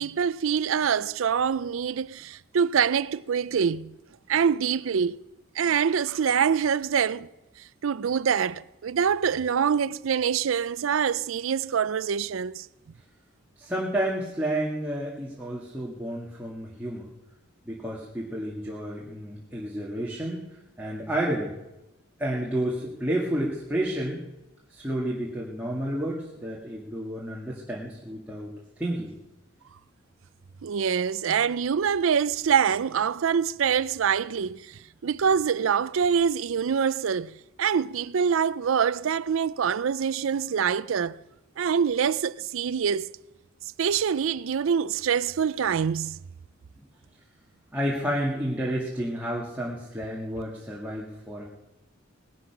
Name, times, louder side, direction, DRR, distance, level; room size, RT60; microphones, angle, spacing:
voice 1, 0.0-4.0 4.3-5.2 5.6-7.3 7.8-12.7 30.6-41.2 41.6-43.1 43.8-46.3, right 7 dB, 75° right, 0.4 m, -25 dB
voice 2, 13.6-17.1 17.7-20.5 20.8-21.5 22.2-24.2 24.7-29.1 46.8-46.9 47.7-51.4, right 1 dB, 10° right, 1.9 m, -30 dB
19.0 x 11.5 x 5.9 m
head